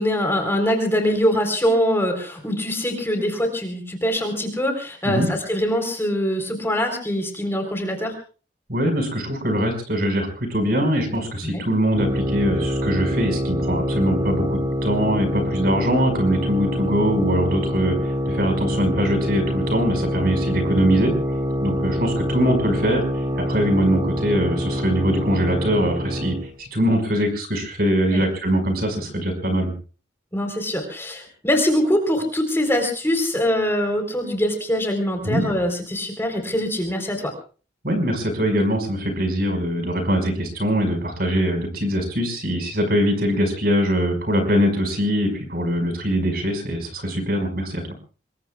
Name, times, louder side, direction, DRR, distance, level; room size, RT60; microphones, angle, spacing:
voice 1, 0.0-8.1 11.4-11.6 28.1-28.2 30.3-37.3, equal, 15° left, 4 dB, 4.0 m, -23 dB
voice 2, 8.7-21.1 21.6-29.7 35.2-35.4 37.8-47.8, equal, 55° right, 6 dB, 5.4 m, -22 dB
sound 1, 12.0-26.5, equal, 20° right, 2.3 m, -25 dB
26.0 x 22.0 x 2.4 m, 0.38 s
head